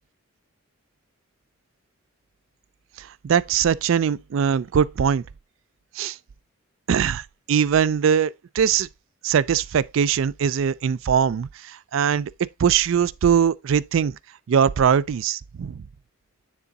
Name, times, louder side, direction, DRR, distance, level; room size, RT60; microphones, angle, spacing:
voice 1, 3.0-5.2 6.0-6.2 6.9-8.9 9.2-12.3 12.6-14.2 14.5-15.8, right 7 dB, 65° right, 0.3 m, -21 dB
9.7 x 3.6 x 4.0 m
head